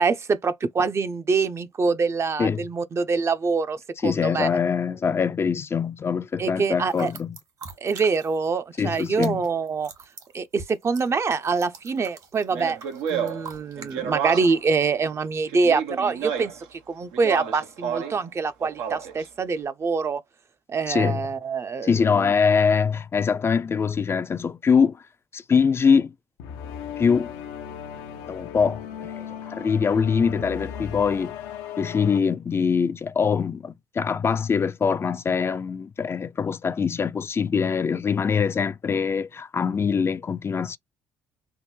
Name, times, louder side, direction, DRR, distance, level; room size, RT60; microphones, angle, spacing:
voice 1, 0.0-4.5 6.4-7.1 7.8-9.9 10.3-12.8 13.1-20.2 20.7-22.3, right 4 dB, 40° right, 0.6 m, -25 dB
voice 2, 4.0-7.4 8.8-9.5 20.9-21.2 21.8-25.0 25.3-26.1 27.0-27.3 28.3-31.3 31.8-40.8, left 6 dB, 35° left, 0.4 m, -23 dB
sound 1, 6.8-8.5 8.8-13.9, right 5 dB, 65° right, 1.6 m, -44 dB
Speech, 12.5-14.7 15.5-16.7 17.1-18.2 18.6-19.3, right 7 dB, 85° right, 0.8 m, -31 dB
sound 2, 26.4-32.2, left 9 dB, 85° left, 0.6 m, -37 dB
3.4 x 2.1 x 3.1 m
supercardioid pair, 60°, 7 cm